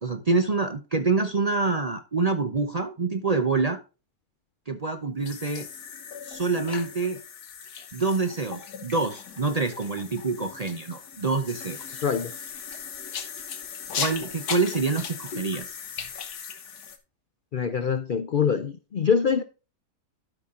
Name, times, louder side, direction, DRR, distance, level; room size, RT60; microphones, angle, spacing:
voice 1, 0.0-3.8 4.7-5.7 6.2-7.2 7.9-12.0 13.9-15.8, right 3 dB, 40° right, 0.6 m, -26 dB
sound 1, 5.2-17.0, left 7 dB, 85° left, 1.7 m, -38 dB
voice 2, 12.0-12.3 17.5-19.4, left 6 dB, 60° left, 0.5 m, -24 dB
12.5 x 5.7 x 3.7 m
omnidirectional pair, 1.6 m